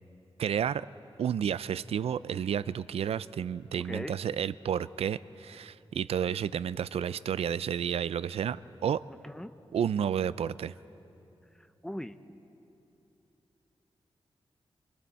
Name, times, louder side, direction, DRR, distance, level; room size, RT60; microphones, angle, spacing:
voice 1, 0.4-0.9 1.2-9.0 9.7-10.7, right 8 dB, 85° right, 17 dB, 0.4 m, -31 dB
voice 2, 3.8-4.2 9.1-9.5 11.6-12.2, left 1 dB, 5° left, 10 dB, 0.7 m, -40 dB
27.0 x 24.5 x 4.2 m, 2.8 s
wide cardioid pair, 140°, 10 cm